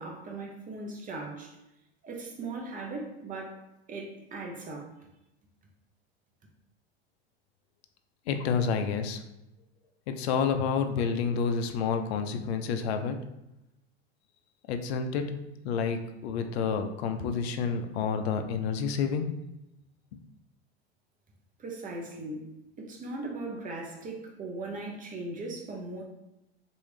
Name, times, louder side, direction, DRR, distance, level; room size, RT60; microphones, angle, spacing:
voice 1, 0.0-1.5 2.0-4.9 21.6-26.0, right 2 dB, 25° right, 0 dB, 0.9 m, -39 dB
voice 2, 8.3-9.2 10.1-13.2 14.7-15.3 15.6-19.3, left 6 dB, 75° left, 7 dB, 0.5 m, -29 dB
3.0 x 2.7 x 3.1 m, 0.91 s
hypercardioid pair, 90°, 32 cm